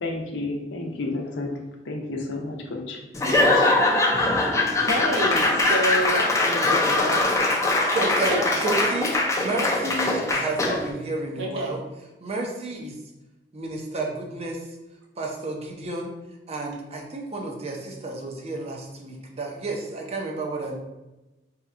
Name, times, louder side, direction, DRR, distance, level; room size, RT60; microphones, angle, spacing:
voice 1, 0.0-1.5 1.8-3.8, left 2 dB, 90° left, 1 dB, 0.6 m, -32 dB
Laughter / Applause / Crowd, 3.1-10.9, left 2 dB, 15° left, 0.4 m, -22 dB
voice 2, 4.4-7.3 8.3-8.5 11.4-11.7, right 1 dB, 80° right, -2 dB, 0.7 m, -29 dB
voice 3, 7.9-11.8 12.2-13.0 13.5-14.7 15.2-16.1 16.5-20.8, right 2 dB, 35° right, 0 dB, 0.5 m, -31 dB
2.8 x 2.3 x 3.6 m, 1.0 s
head